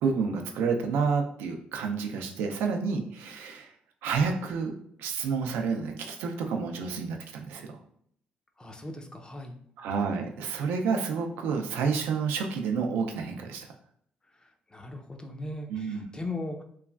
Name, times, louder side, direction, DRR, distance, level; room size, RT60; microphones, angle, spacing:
voice 1, 0.0-3.7 4.0-4.7 5.0-7.8 9.8-13.7 15.7-16.1, right 5 dB, 85° right, 3 dB, 0.4 m, -29 dB
voice 2, 8.6-9.6 14.4-16.6, left 2 dB, 25° left, 4 dB, 0.5 m, -38 dB
3.0 x 2.3 x 2.3 m, 0.66 s
supercardioid pair, 60°, 4 cm